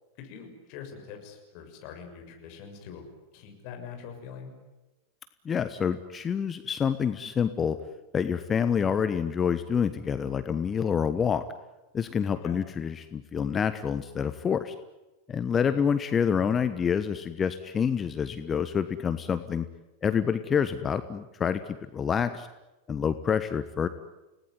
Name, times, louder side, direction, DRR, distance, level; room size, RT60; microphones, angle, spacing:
voice 1, 0.2-3.1 3.3-4.5 12.4-12.6 15.7-15.8, left 7 dB, 45° left, 4 dB, 6.7 m, -44 dB
voice 2, 5.4-7.8 8.1-11.4 11.9-14.7 15.3-19.6 20.0-21.6 21.9-22.5 22.9-23.9, left 7 dB, 20° left, 11 dB, 1.2 m, -27 dB
30.0 x 19.0 x 9.7 m, 1.1 s
figure-of-eight pair, 90°, 0 cm